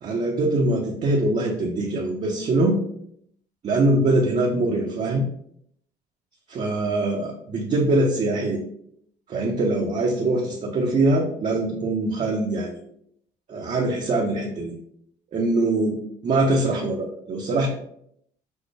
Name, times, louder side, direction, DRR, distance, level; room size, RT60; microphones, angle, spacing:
voice 1, 0.0-2.8 3.6-5.3 6.5-8.6 9.3-12.8 13.5-14.7 15.3-16.0 16.2-17.7, right 2 dB, 45° right, -1 dB, 0.7 m, -23 dB
6.3 x 2.1 x 3.3 m, 0.70 s
cardioid pair, 110°, 17 cm